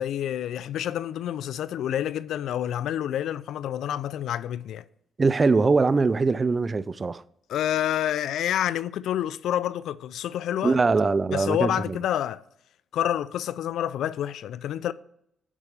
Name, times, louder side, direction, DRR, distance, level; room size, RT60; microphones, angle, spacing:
voice 1, 0.0-4.8 7.5-10.8 11.3-12.4 12.9-14.9, left 11 dB, 75° left, 0.3 m, -28 dB
voice 2, 5.2-7.2 10.6-12.0, right 4 dB, 30° right, 0.4 m, -22 dB
7.3 x 4.8 x 6.7 m
cardioid pair, 90°, 0 cm